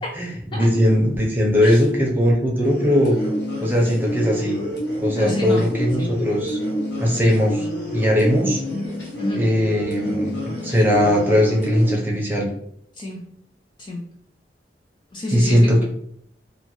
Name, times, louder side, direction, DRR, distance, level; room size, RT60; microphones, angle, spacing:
voice 1, 0.1-3.2 3.6-4.6 5.0-6.6 7.0-8.6 9.3-10.4 10.6-12.5 15.3-15.8, equal, 10° right, -2 dB, 0.6 m, -19 dB
sound 1, 2.6-11.9, equal, 70° left, 0.9 m, -28 dB
voice 2, 5.1-5.7 6.0-6.2 9.2-9.5 12.9-13.3 13.8-14.1 15.1-15.8, left 1 dB, 30° left, 0 dB, 0.3 m, -30 dB
2.6 x 2.5 x 3.0 m, 0.69 s
head